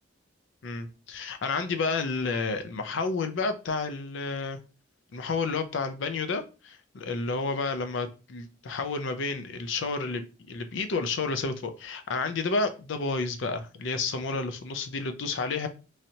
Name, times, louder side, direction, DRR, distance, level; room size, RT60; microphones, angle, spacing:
voice 1, 0.6-4.6 5.1-15.7, left 4 dB, 70° left, 8 dB, 0.5 m, -30 dB
3.1 x 2.8 x 2.7 m, 0.32 s
head